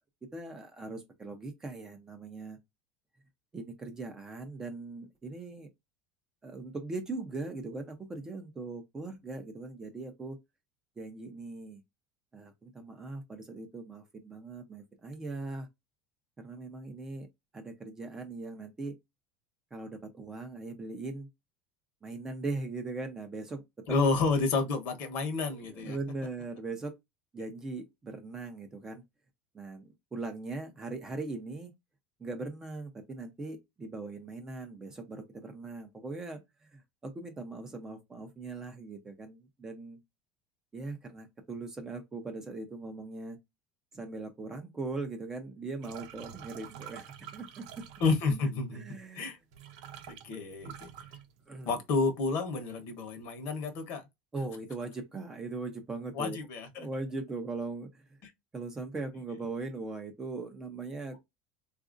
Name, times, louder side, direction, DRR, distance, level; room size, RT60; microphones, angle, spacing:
voice 1, 0.3-2.6 3.5-5.7 6.4-10.4 11.0-11.8 12.3-15.7 16.4-17.3 17.5-19.0 19.7-21.3 22.0-23.8 25.5-26.9 27.3-29.0 29.5-31.7 32.2-36.4 36.7-40.0 40.7-43.4 43.9-47.9 48.3-48.4 48.7-49.3 51.5-51.8 54.3-56.4 56.7-58.2 58.5-61.2, right 3 dB, 15° right, 0.6 m, -40 dB
voice 2, 23.9-26.0 48.0-48.8 49.1-49.4 50.1-50.9 51.7-54.0 56.1-56.9 58.2-58.3, left 4 dB, 50° left, 1.0 m, -30 dB
sound 1, 45.8-48.4 49.2-49.3 49.5-52.0 52.3-52.7 53.1-53.8, right 9 dB, 75° right, 0.8 m, -48 dB
3.9 x 2.4 x 2.5 m
cardioid pair, 165°, 4 cm